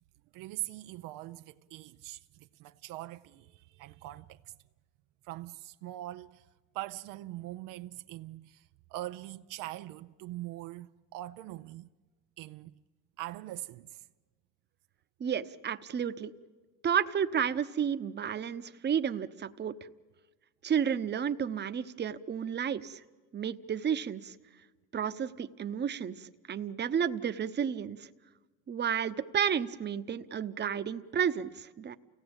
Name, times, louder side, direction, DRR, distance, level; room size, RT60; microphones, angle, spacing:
voice 1, 0.3-4.5 5.2-6.4 6.7-8.6 8.9-11.9 12.4-12.7 13.2-14.0, right 16 dB, 75° right, 0.7 m, -42 dB
voice 2, 15.2-16.3 16.8-19.7 20.6-23.0 23.3-24.4 24.9-28.1 28.7-32.0, right 8 dB, 30° right, 0.9 m, -32 dB
29.0 x 17.0 x 8.8 m
supercardioid pair, 95°, 32 cm